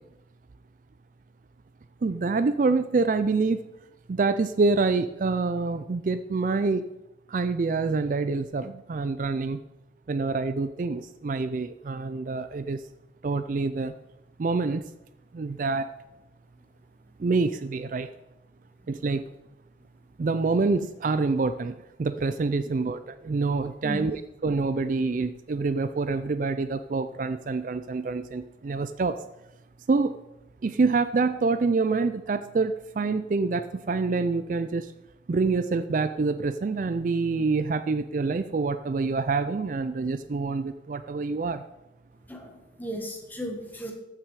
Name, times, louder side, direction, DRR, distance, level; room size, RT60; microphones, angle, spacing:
voice 1, 2.0-3.6 4.1-6.8 7.3-9.6 10.1-12.8 13.2-13.9 14.4-14.9 15.3-15.9 17.2-18.1 18.9-19.3 20.2-24.2 24.4-29.2 29.9-30.1 30.6-34.9 35.3-41.6, right 4 dB, 45° right, 11 dB, 0.4 m, -26 dB
voice 2, 42.3-43.9, equal, 10° left, 2 dB, 1.4 m, -36 dB
14.0 x 6.1 x 4.7 m, 0.93 s
head